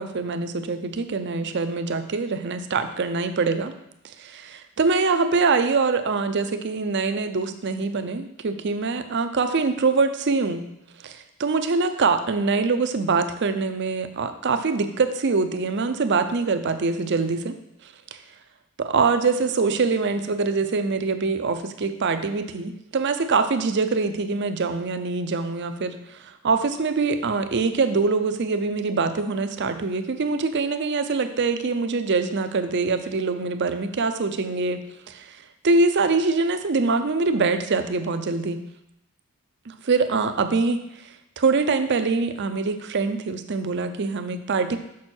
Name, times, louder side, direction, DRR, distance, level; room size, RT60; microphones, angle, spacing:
voice 1, 0.0-3.7 4.2-10.6 11.0-17.5 18.8-35.4 35.6-38.6 39.7-40.8 41.4-44.8, right 4 dB, 55° right, 9 dB, 0.6 m, -24 dB
6.2 x 6.2 x 4.4 m, 0.83 s
head